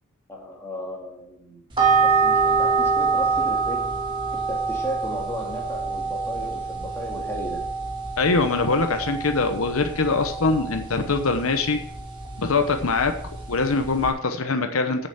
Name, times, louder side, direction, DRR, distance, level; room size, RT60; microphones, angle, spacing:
voice 1, 0.3-1.7 2.0-3.8 4.3-7.7, equal, 10° left, -3 dB, 2.7 m, -35 dB
sound 1, 1.7-14.1, right 5 dB, 20° right, 2.0 m, -26 dB
voice 2, 8.2-11.8 12.4-13.1 13.5-15.1, left 3 dB, 75° left, 6 dB, 0.9 m, -23 dB
8.1 x 7.0 x 7.3 m, 0.68 s
head